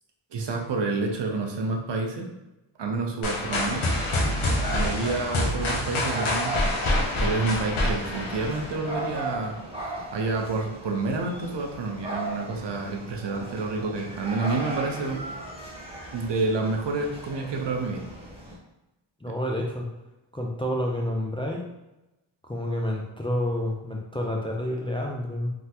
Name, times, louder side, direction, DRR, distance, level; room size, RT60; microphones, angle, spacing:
voice 1, 0.3-2.3 2.8-3.9 4.7-6.7 7.2-9.6 10.1-15.2 16.1-18.0, right 3 dB, 65° right, 2 dB, 0.7 m, -29 dB
sound 1, 3.2-9.1, left 1 dB, 85° left, 0.7 m, -27 dB
sound 2, 3.6-18.6, right 1 dB, 10° right, 1.0 m, -37 dB
voice 2, 19.2-19.9 20.3-21.6 22.5-25.5, left 1 dB, 15° left, -1 dB, 0.3 m, -29 dB
3.5 x 2.1 x 2.8 m, 0.98 s
wide cardioid pair, 65°, 47 cm